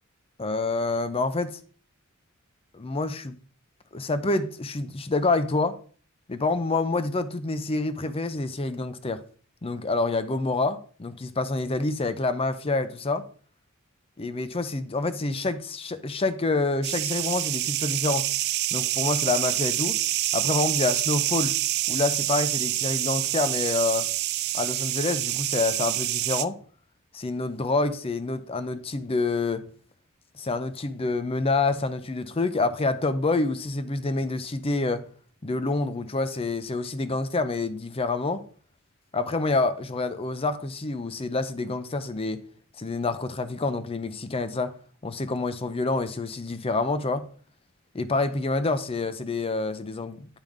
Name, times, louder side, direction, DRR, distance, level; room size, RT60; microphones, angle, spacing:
voice 1, 0.4-1.6 2.7-3.4 3.9-5.8 6.3-9.2 9.6-13.3 14.2-18.3 18.7-20.0 20.3-21.6 21.9-24.1 24.5-26.6 27.1-29.7 30.3-35.1 35.4-38.4 39.1-42.4 42.8-44.7 45.0-47.3 47.9-50.3, left 3 dB, 25° left, 0.6 m, -27 dB
sound 1, 16.8-26.4, right 15 dB, 50° right, 0.3 m, -27 dB
9.1 x 5.1 x 3.6 m
head